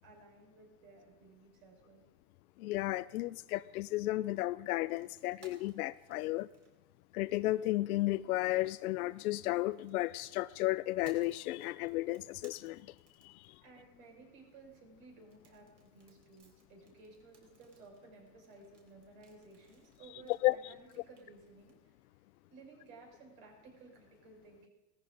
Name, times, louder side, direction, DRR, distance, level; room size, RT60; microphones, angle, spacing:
voice 1, 0.0-2.0 12.5-12.9 13.2-22.0 22.5-24.7, right 3 dB, 65° right, 0 dB, 6.1 m, -57 dB
voice 2, 2.6-6.5 7.1-12.9 13.2-13.5 20.3-20.6, left 17 dB, 85° left, 15 dB, 0.5 m, -33 dB
sound 1, 4.7-7.6 9.0-13.8 15.2-21.7, right 4 dB, 40° right, 4.0 m, -63 dB
18.0 x 14.0 x 4.0 m, 1.1 s
supercardioid pair, 125°, 43 cm